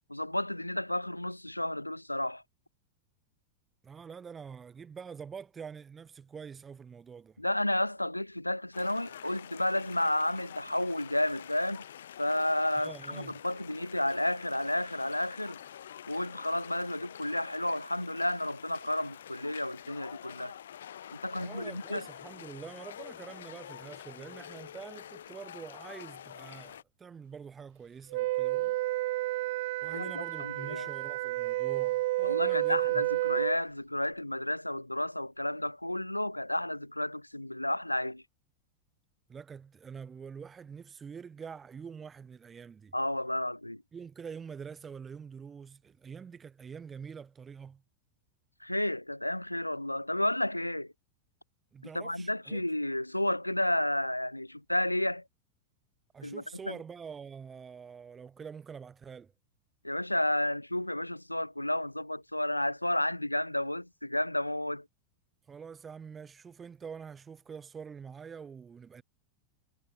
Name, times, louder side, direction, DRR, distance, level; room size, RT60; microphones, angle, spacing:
voice 1, 0.1-2.4 7.4-11.8 12.2-15.6 16.1-20.6 21.1-22.0 29.9-30.9 32.2-38.2 42.9-43.8 48.6-50.9 51.9-55.2 56.2-56.7 59.8-64.8, left 1 dB, 85° left, 0.4 m, -31 dB
voice 2, 3.8-7.4 12.7-13.4 21.4-28.8 29.8-33.1 39.3-42.9 43.9-47.8 51.7-52.6 56.1-59.3 65.5-69.0, right 6 dB, 20° right, 6.1 m, -46 dB
sound 1, 8.7-26.8, left 10 dB, 65° left, 2.3 m, -47 dB
Wind instrument woodwind instrument, 28.1-33.6, right 19 dB, 55° right, 1.0 m, -30 dB
figure-of-eight pair, 85°, 0 cm